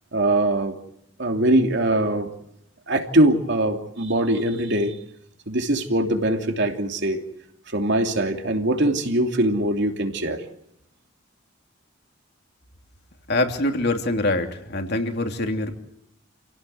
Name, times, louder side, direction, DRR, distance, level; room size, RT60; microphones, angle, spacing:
voice 1, 0.1-0.8 1.2-2.3 2.9-5.0 5.5-7.2 7.7-10.4, right 1 dB, 60° right, 4 dB, 3.0 m, -22 dB
voice 2, 13.3-15.7, left 2 dB, 55° left, 4 dB, 3.1 m, -24 dB
29.0 x 17.0 x 7.9 m, 0.78 s
head